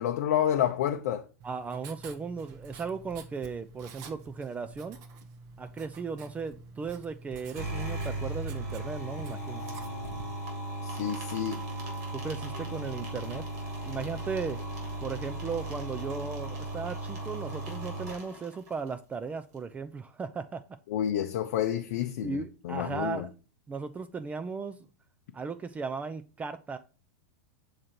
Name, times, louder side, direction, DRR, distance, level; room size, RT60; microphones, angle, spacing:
voice 1, 0.0-1.3 10.8-11.6 20.9-23.3, left 10 dB, 60° left, 0.5 m, -29 dB
voice 2, 1.4-5.0 5.6-9.6 12.1-13.4 13.9-14.6 15.0-20.6 22.2-23.3 23.7-24.8 25.3-26.8, right 5 dB, 15° right, 0.4 m, -36 dB
Writing, 1.4-10.4, right 3 dB, 45° right, 0.8 m, -48 dB
sound 1, 7.5-18.9, right 2 dB, 65° right, 2.8 m, -36 dB
6.4 x 3.7 x 4.3 m
hypercardioid pair, 100°, 9 cm